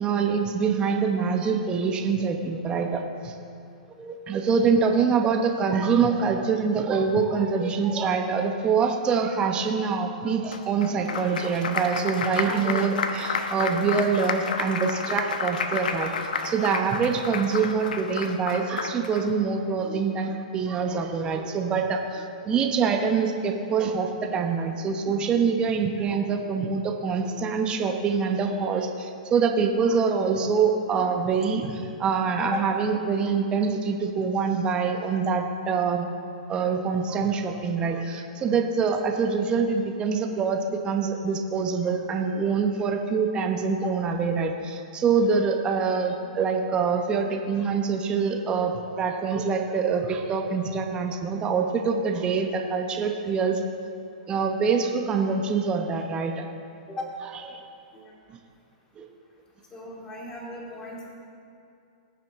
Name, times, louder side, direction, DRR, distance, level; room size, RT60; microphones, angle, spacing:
voice 1, 0.0-3.4 4.0-16.1 16.4-36.1 36.5-53.6 54.3-56.4 57.5-57.6 58.3-58.4 59.0-59.1, right 5 dB, 20° right, 3 dB, 0.9 m, -25 dB
Applause, 10.5-19.2, left 5 dB, 80° left, 0.9 m, -31 dB
voice 2, 59.7-61.1, left 2 dB, 15° left, -3 dB, 2.4 m, -36 dB
19.0 x 7.5 x 3.6 m, 2.6 s
hypercardioid pair, 135°, 4 cm